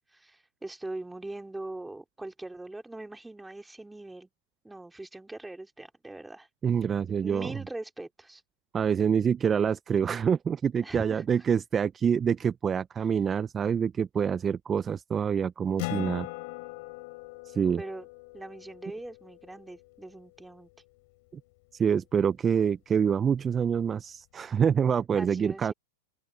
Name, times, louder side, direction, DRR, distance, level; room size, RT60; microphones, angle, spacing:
voice 1, 0.1-4.3 4.6-6.5 7.2-8.4 10.8-11.4 17.8-18.1 18.3-20.7 25.2-25.7, right 2 dB, 5° right, 3.8 m, -41 dB
voice 2, 6.6-7.6 8.7-16.3 17.5-17.8 21.3-21.4 21.7-25.7, right 7 dB, 20° right, 0.6 m, -26 dB
Acoustic guitar, 15.8-20.7, left 26 dB, 55° left, 3.5 m, -41 dB
open air
hypercardioid pair, 110°, 0 cm